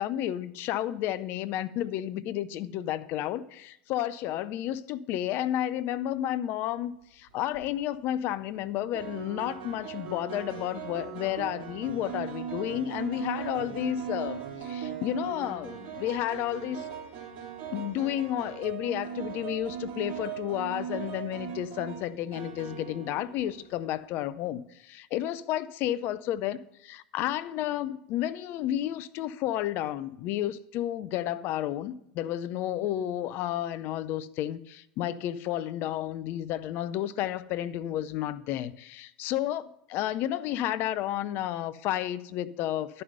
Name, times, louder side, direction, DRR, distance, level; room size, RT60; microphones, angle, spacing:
voice 1, 0.0-16.9 17.7-43.0, left 12 dB, 50° left, 0.6 m, -31 dB
sound 1, 7.3-7.7 8.9-23.8, right 8 dB, 45° right, 3.5 m, -39 dB
10.5 x 5.5 x 8.0 m
figure-of-eight pair, 80°, 5 cm